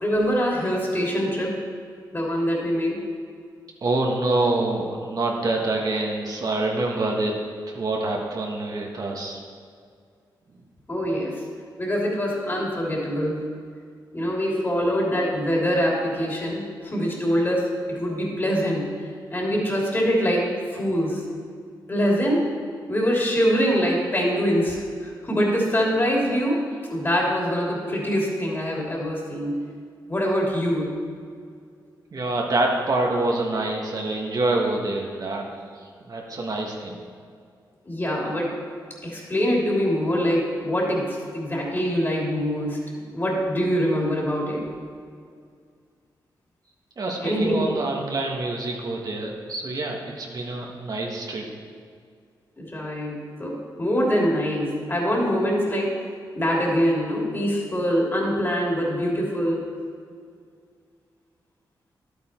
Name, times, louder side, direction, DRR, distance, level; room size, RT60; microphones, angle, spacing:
voice 1, 0.0-1.6 2.1-3.1 10.9-11.4 11.8-13.5 14.1-18.9 19.3-21.2 21.9-22.6 22.9-29.7 30.1-31.0 37.8-38.5 39.0-44.7 47.2-47.7 52.6-56.0 56.3-59.6, equal, 25° left, -3 dB, 3.2 m, -24 dB
voice 2, 3.8-7.3 7.7-9.4 32.1-35.5 36.1-37.0 47.0-51.4, right 2 dB, 50° right, -1 dB, 1.6 m, -26 dB
11.5 x 8.6 x 4.5 m, 2.2 s
cardioid pair, 75°, 8 cm